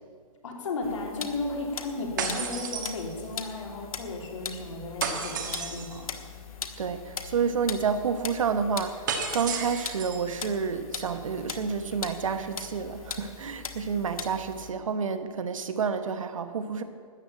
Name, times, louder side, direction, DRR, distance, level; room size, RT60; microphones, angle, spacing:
voice 1, 0.4-6.1, left 3 dB, 60° left, 0 dB, 3.0 m, -34 dB
sound 1, 0.8-14.7, left 6 dB, 80° left, 1.4 m, -40 dB
sound 2, 2.2-3.5 5.0-6.0 9.1-10.2, right 6 dB, 35° right, 1.3 m, -32 dB
voice 2, 6.8-9.0 9.3-16.8, right 6 dB, 65° right, 9 dB, 1.1 m, -29 dB
13.0 x 8.0 x 8.8 m, 2.1 s
hypercardioid pair, 180°, 18 cm